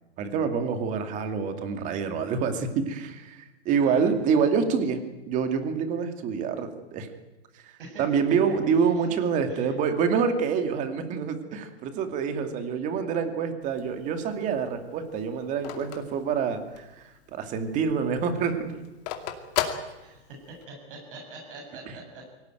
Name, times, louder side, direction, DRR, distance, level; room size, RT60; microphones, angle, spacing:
voice 1, 0.2-5.0 5.3-7.1 7.5-7.7 8.0-18.7, right 6 dB, 20° right, 7 dB, 2.3 m, -27 dB
voice 2, 3.7-4.0 7.8-8.0 8.7-9.1 9.5-9.7 20.0-22.4, right 3 dB, 50° right, 1 dB, 7.1 m, -44 dB
Telephone, 13.6-17.0 17.4-17.5 17.8-20.6, left 10 dB, 35° left, 2.5 m, -34 dB
23.5 x 17.5 x 9.2 m, 1.1 s
hypercardioid pair, 155°, 34 cm